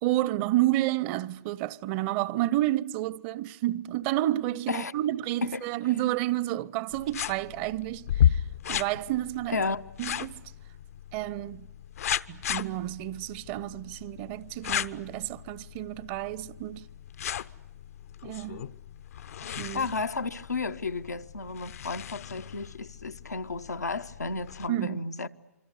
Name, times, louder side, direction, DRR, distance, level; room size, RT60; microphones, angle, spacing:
voice 1, 0.0-8.4 8.7-9.6 10.0-10.4 11.1-11.7 12.3-16.9 18.2-18.7 19.4-19.9 24.7-25.1, right 15 dB, 40° right, 0.9 m, -30 dB
voice 2, 5.4-5.7 9.5-9.8 19.7-25.3, left 4 dB, 85° left, 1.1 m, -33 dB
sound 1, 6.9-24.7, left 10 dB, 65° left, 0.9 m, -34 dB
27.0 x 25.5 x 8.3 m
figure-of-eight pair, 115°, 9 cm